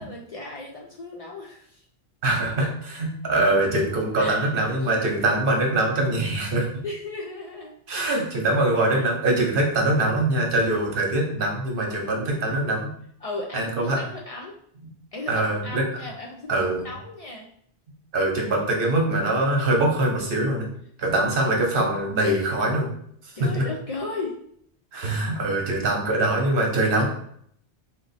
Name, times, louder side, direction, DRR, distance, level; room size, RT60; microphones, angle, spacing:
voice 1, 0.0-1.8 4.2-4.5 4.9-5.0 6.8-7.8 8.9-9.0 13.2-14.6 15.1-17.5 23.4-24.3, left 2 dB, 55° left, -2 dB, 0.4 m, -36 dB
voice 2, 2.2-6.7 7.9-12.9 13.5-14.0 15.3-15.8 16.5-16.8 18.1-20.7 21.0-22.9 23.2-23.6 24.9-27.0, right 2 dB, 60° right, 1 dB, 0.9 m, -23 dB
2.9 x 2.1 x 4.0 m, 0.66 s
omnidirectional pair, 1.1 m